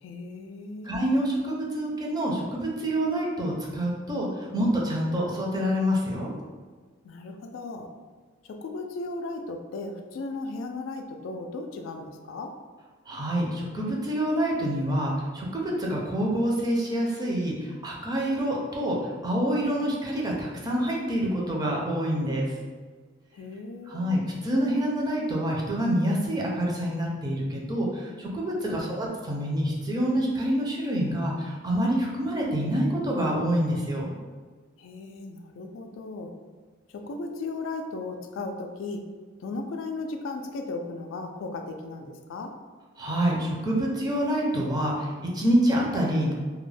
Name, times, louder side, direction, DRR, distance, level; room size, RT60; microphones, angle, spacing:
voice 1, 0.0-0.9 7.0-7.9 8.4-12.5 23.3-24.1 28.6-29.1 34.8-36.3 36.9-39.1 39.4-42.5, left 3 dB, 90° left, 5 dB, 0.3 m, -36 dB
voice 2, 0.8-6.3 13.1-22.5 23.9-34.1 43.0-46.3, equal, 20° right, -3 dB, 0.5 m, -27 dB
2.3 x 2.1 x 3.2 m, 1.5 s
head